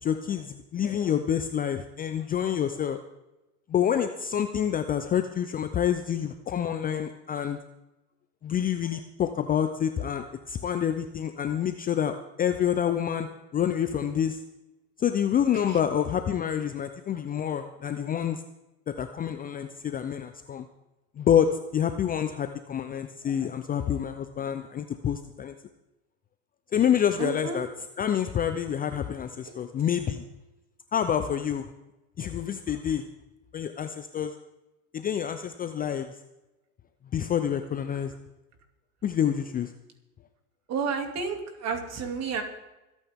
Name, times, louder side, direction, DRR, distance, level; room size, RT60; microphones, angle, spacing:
voice 1, 0.0-3.0 3.7-7.6 8.4-13.3 13.5-14.4 15.0-18.4 18.9-20.7 21.2-25.5 26.7-27.7 28.0-30.2 30.9-31.7 32.2-33.1 33.5-34.3 34.9-36.1 37.1-38.1 39.0-39.7, left 9 dB, 20° left, 8 dB, 0.7 m, -27 dB
voice 2, 27.2-27.6 29.5-29.6 40.7-42.4, right 5 dB, 35° right, 5 dB, 2.8 m, -31 dB
25.0 x 9.3 x 3.7 m, 0.99 s
hypercardioid pair, 95°, 46 cm